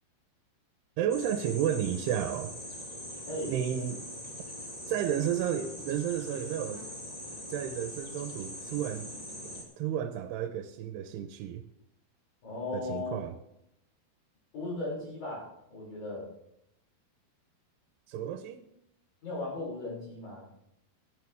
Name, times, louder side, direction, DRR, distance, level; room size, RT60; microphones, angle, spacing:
voice 1, 1.0-2.5 3.5-4.0 4.9-6.8 7.5-9.1 9.8-11.6 12.7-13.3 18.1-18.7, right 9 dB, 85° right, 2.7 m, -32 dB
sound 1, 1.1-9.6, left 1 dB, 15° left, 1.5 m, -42 dB
voice 2, 12.4-13.2 14.5-16.3 19.2-20.4, left 2 dB, 55° left, 7.8 m, -37 dB
15.5 x 12.5 x 3.5 m
omnidirectional pair, 4.8 m